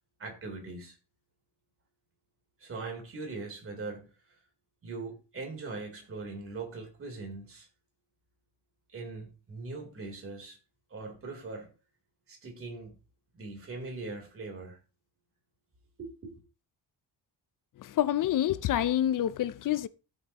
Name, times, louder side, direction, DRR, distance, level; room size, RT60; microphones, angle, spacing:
voice 1, 0.2-1.0 2.6-4.1 4.8-7.7 8.9-10.6 10.9-11.7 12.3-13.0 13.3-14.8 16.0-16.4, right 3 dB, 35° right, 3.6 m, -41 dB
voice 2, 17.8-19.9, left 12 dB, 50° left, 0.6 m, -27 dB
14.0 x 8.0 x 3.0 m
cardioid pair, 160°, 40 cm